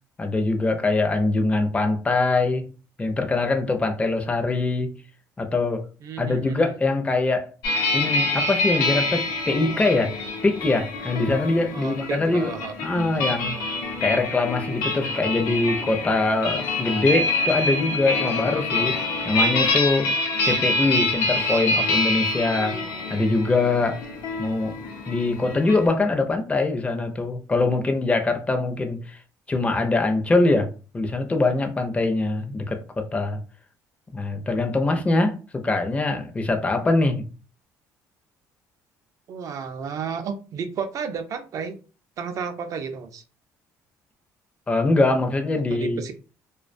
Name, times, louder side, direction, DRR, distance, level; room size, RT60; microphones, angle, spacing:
voice 1, 0.2-2.7 3.0-4.9 5.4-5.9 6.2-7.5 7.9-10.2 10.4-12.5 12.8-13.6 14.0-19.0 19.2-20.1 20.4-22.8 23.1-24.0 24.4-24.7 25.1-29.2 29.5-33.4 34.1-37.2 44.7-46.0, left 2 dB, 20° left, 0.4 m, -23 dB
voice 2, 6.0-6.7 11.7-12.7 39.3-41.8 42.2-43.2 45.7-46.1, right 6 dB, 55° right, 0.4 m, -32 dB
sound 1, 7.6-25.9, left 2 dB, 80° left, 0.6 m, -26 dB
2.3 x 2.1 x 2.5 m
cardioid pair, 90°, 7 cm